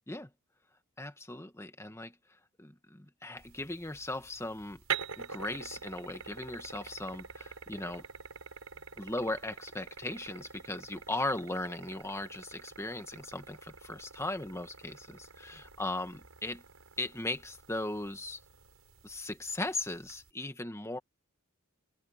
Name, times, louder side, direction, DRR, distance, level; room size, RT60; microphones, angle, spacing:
voice 1, 1.0-2.1 2.6-4.8 5.2-8.1 9.0-16.6 17.0-18.4 19.0-21.0, left 2 dB, 15° left, 1.6 m, -38 dB
sound 1, 3.4-20.3, right 6 dB, 75° right, 7.5 m, -46 dB
open air
head